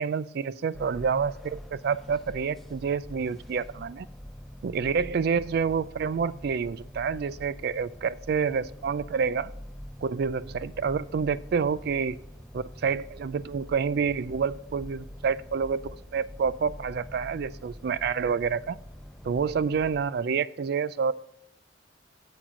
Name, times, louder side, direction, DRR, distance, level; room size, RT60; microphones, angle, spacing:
voice 1, 0.0-4.1 4.6-9.5 10.0-12.2 12.5-18.8 19.2-21.1, right 6 dB, 60° right, 18 dB, 0.3 m, -28 dB
sound 1, 0.7-20.1, equal, ahead, 0.5 m, -45 dB
7.4 x 7.2 x 5.2 m, 0.75 s
head